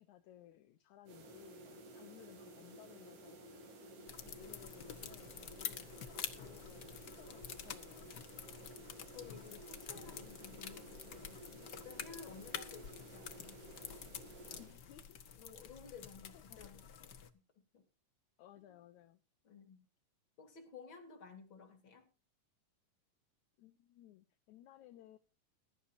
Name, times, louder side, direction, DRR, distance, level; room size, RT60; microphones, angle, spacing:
voice 1, 0.0-3.9 4.1-8.2 14.6-15.3 16.5-16.8 18.4-19.2 23.6-25.2, left 13 dB, 70° left, 9 dB, 2.2 m, -60 dB
sound 1, 1.0-14.8, right 2 dB, 65° right, 4.2 m, -54 dB
sound 2, 4.1-17.3, left 8 dB, 90° left, 0.9 m, -48 dB
voice 2, 9.1-13.6 15.3-16.8 17.6-17.9 18.7-18.8 19.4-19.9 20.4-22.1, left 5 dB, 35° left, 3 dB, 3.9 m, -55 dB
21.0 x 11.5 x 2.7 m, 0.30 s
omnidirectional pair, 3.9 m